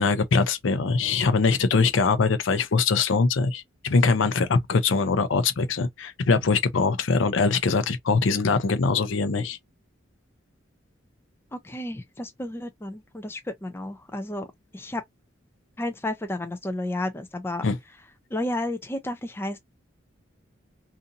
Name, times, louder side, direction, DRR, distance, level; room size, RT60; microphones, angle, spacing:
voice 1, 0.0-9.6 17.6-17.8, left 4 dB, 75° left, 0.5 m, -22 dB
voice 2, 11.5-14.5 14.7-15.0 15.8-17.6 18.3-19.6, left 1 dB, 10° left, 0.4 m, -32 dB
2.6 x 2.5 x 2.5 m
head